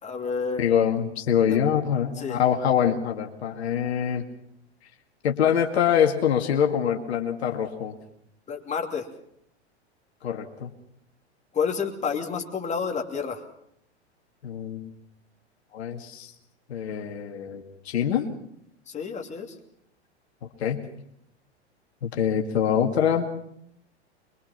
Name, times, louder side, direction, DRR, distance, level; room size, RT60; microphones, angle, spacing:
voice 1, 0.0-0.6 1.5-1.6 2.2-2.4 8.5-9.1 11.5-13.4 18.9-19.5, left 6 dB, 20° left, 2 dB, 2.9 m, -29 dB
voice 2, 0.6-4.3 5.2-7.9 10.2-10.7 14.4-14.9 15.7-16.3 16.7-18.3 20.6-20.8 22.0-23.3, left 8 dB, 65° left, 3 dB, 2.3 m, -24 dB
23.0 x 23.0 x 5.9 m, 0.73 s
figure-of-eight pair, 95°, 35 cm